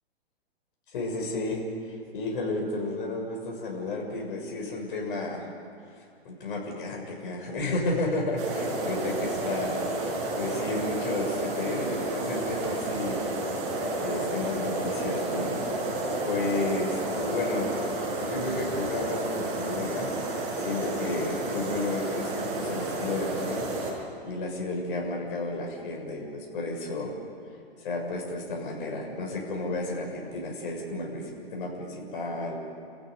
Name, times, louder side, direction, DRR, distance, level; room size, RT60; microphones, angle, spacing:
voice 1, 0.9-5.5 6.2-13.3 14.0-17.8 18.2-23.7 23.9-27.2 27.8-32.6, left 2 dB, 60° left, 0 dB, 6.8 m, -32 dB
sound 1, 8.4-23.9, right 2 dB, 45° right, 6.9 m, -31 dB
29.5 x 15.0 x 9.4 m, 2.5 s
hypercardioid pair, 120°, 31 cm